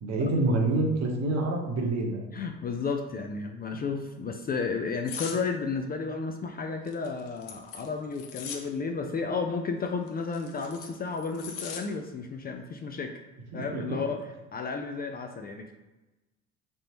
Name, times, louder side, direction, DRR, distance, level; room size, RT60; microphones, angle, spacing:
voice 1, 0.0-2.2 3.7-3.8 13.5-13.8, right 2 dB, 45° right, 1 dB, 1.1 m, -27 dB
voice 2, 2.3-13.1 13.5-14.2 14.5-15.7, left 4 dB, 25° left, 4 dB, 0.4 m, -32 dB
sound 1, 5.1-5.4 6.8-8.7 10.1-11.8 12.2-12.5, left 7 dB, 80° left, 0.7 m, -40 dB
3.8 x 3.5 x 2.9 m, 1.1 s
hypercardioid pair, 70°, 36 cm